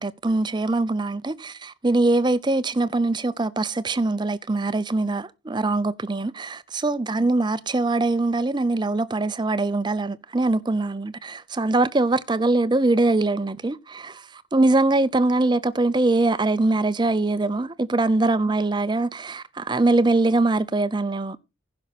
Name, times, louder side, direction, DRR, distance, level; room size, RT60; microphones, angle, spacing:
voice 1, 0.0-21.4, right 2 dB, 20° right, 0.5 m, -22 dB
15.5 x 6.2 x 4.1 m
head